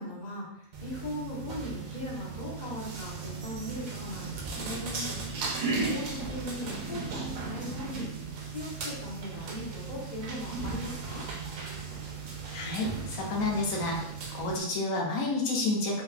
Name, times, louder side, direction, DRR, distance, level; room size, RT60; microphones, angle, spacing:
voice 1, 0.0-5.1 5.8-8.1 8.5-11.3, left 1 dB, 35° left, -6 dB, 1.1 m, -39 dB
sound 1, 0.7-14.6, right 4 dB, 85° right, 1.1 m, -36 dB
voice 2, 12.5-14.0 14.3-16.0, left 2 dB, 90° left, -2 dB, 1.1 m, -30 dB
3.9 x 2.5 x 2.4 m, 0.75 s
omnidirectional pair, 1.4 m